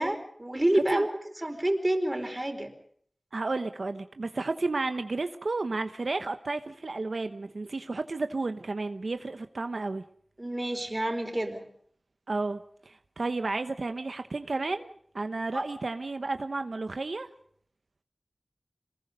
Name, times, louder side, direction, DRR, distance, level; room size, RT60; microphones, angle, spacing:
voice 1, 0.0-2.7 10.4-11.6 15.5-15.6, right 1 dB, 25° right, 5 dB, 4.5 m, -28 dB
voice 2, 0.7-1.1 3.3-10.0 12.3-17.3, right 3 dB, 85° right, 8 dB, 0.9 m, -32 dB
27.0 x 20.5 x 5.2 m, 0.64 s
wide cardioid pair, 45°, 0 cm